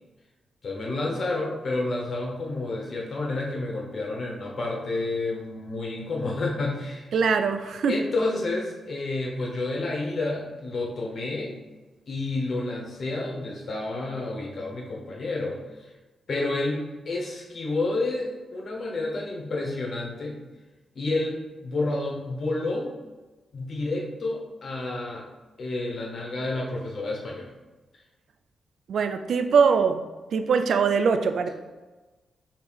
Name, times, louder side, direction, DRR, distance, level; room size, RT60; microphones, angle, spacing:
voice 1, 0.6-7.1 7.9-11.6 12.1-15.9 16.3-20.4 20.9-22.9 23.5-25.2 25.6-27.5, left 2 dB, 55° left, -1 dB, 1.2 m, -30 dB
voice 2, 7.1-7.9 28.9-30.0 30.3-31.5, right 5 dB, 70° right, 8 dB, 0.3 m, -22 dB
3.4 x 3.2 x 4.7 m, 1.2 s
hypercardioid pair, 40°, 0 cm